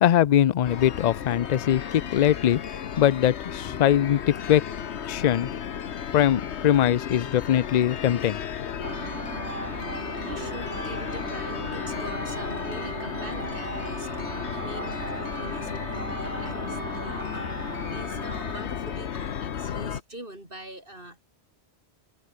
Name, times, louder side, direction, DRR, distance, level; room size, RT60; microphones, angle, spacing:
voice 1, 0.0-1.8 2.1-2.6 3.0-4.6 5.1-5.5 6.1-8.4 8.8-8.9, left 11 dB, 55° left, 0.5 m, -21 dB
sound 1, 0.6-20.0, left 8 dB, 80° left, 1.3 m, -34 dB
sound 2, 8.8-18.6, right 3 dB, 75° right, 3.2 m, -37 dB
voice 2, 10.2-21.2, right 1 dB, 55° right, 7.7 m, -43 dB
omnidirectional pair, 1.1 m